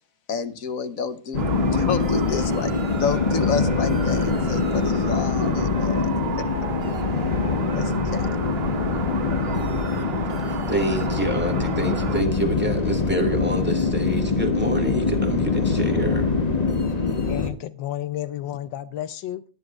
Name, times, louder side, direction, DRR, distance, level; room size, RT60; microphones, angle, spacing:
voice 1, 0.3-6.1 7.7-8.3, left 6 dB, 55° left, 11 dB, 1.3 m, -30 dB
sound 1, 1.3-17.5, left 4 dB, 25° left, 1.0 m, -24 dB
sound 2, 1.4-12.2, right 7 dB, 65° right, 0.6 m, -35 dB
voice 2, 10.7-16.3, right 1 dB, 5° right, 3 dB, 1.9 m, -27 dB
voice 3, 17.3-19.4, left 12 dB, 80° left, 12 dB, 1.4 m, -31 dB
18.5 x 11.0 x 2.5 m, 0.36 s
omnidirectional pair, 2.0 m